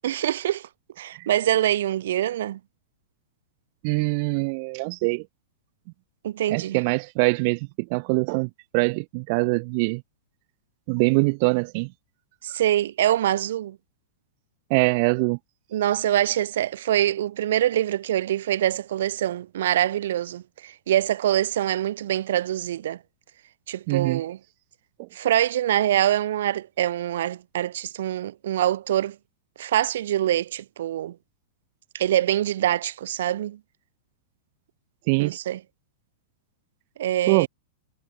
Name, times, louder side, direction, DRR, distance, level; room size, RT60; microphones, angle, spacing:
voice 1, 0.0-0.7 1.0-2.6 6.2-6.8 12.4-13.8 15.7-23.0 23.7-24.4 25.1-29.2 29.6-31.1 31.9-33.6 35.2-35.6 37.0-37.5, right 12 dB, 70° right, 3.0 m, -24 dB
voice 2, 3.8-5.2 6.5-10.0 10.9-11.9 14.7-15.4 23.9-24.2 35.1-35.3 37.3-37.5, right 32 dB, 40° right, 2.0 m, -23 dB
supercardioid pair, 155°, 0 cm